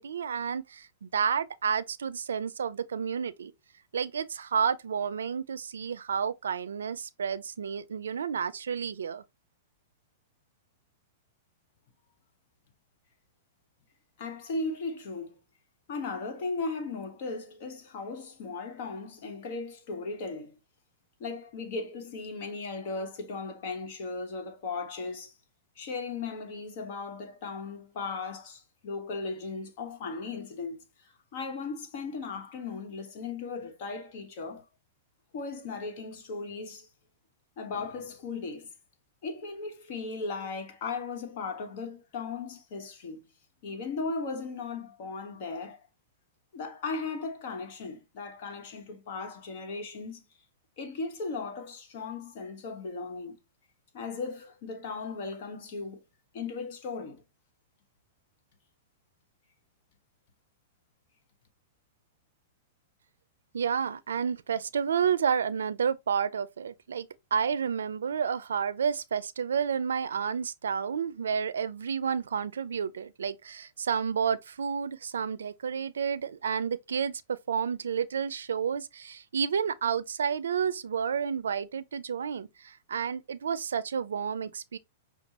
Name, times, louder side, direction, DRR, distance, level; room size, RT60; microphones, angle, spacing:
voice 1, 0.0-3.5 3.9-9.2 63.5-84.8, right 7 dB, 85° right, 0.4 m, -30 dB
voice 2, 14.2-15.4 15.9-20.6 21.2-25.3 25.8-34.6 35.3-36.9 37.6-38.7 39.2-43.3 43.6-45.8 46.5-50.2 50.8-53.4 53.9-56.0 56.3-57.2, left 4 dB, 55° left, 1.2 m, -37 dB
6.0 x 2.3 x 2.9 m
hypercardioid pair, 130°, 0 cm